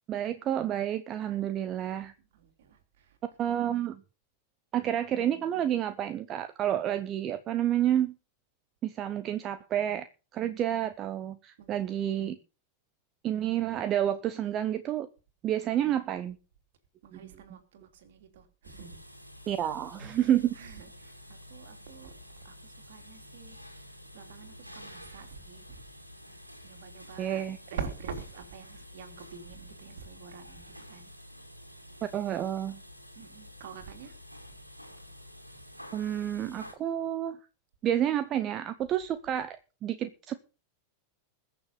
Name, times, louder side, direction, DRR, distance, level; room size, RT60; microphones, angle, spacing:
voice 1, 0.1-2.1 3.4-4.0 4.7-8.1 8.8-10.1 10.3-12.4 13.2-15.1 15.4-16.4 19.5-20.6 27.2-27.6 32.1-32.8 35.9-37.4 37.8-40.3, right 11 dB, 30° right, 0.8 m, -29 dB
voice 2, 1.8-3.2 3.4-3.6 11.6-11.9 17.0-19.0 20.5-23.6 24.1-25.8 26.6-27.4 27.7-31.1 33.1-34.1, right 6 dB, 55° right, 3.2 m, -45 dB
sound 1, 18.6-36.7, left 1 dB, 90° right, 2.4 m, -49 dB
21.0 x 7.0 x 5.2 m
figure-of-eight pair, 90°, 0 cm